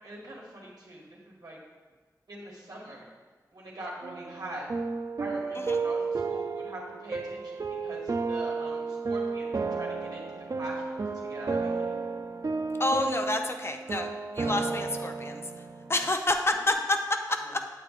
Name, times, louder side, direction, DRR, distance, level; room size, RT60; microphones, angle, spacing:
voice 1, 0.0-1.6 2.3-3.1 3.5-4.7 5.2-11.9 16.0-16.1 17.4-17.5, right 1 dB, 75° right, -3 dB, 2.2 m, -43 dB
sound 1, 4.0-16.1, right 4 dB, 60° right, 0.5 m, -32 dB
voice 2, 12.8-15.4 15.9-17.0 17.3-17.6, left 2 dB, 35° left, 5 dB, 0.8 m, -28 dB
8.5 x 8.4 x 2.6 m, 1.4 s
wide cardioid pair, 50°, 7 cm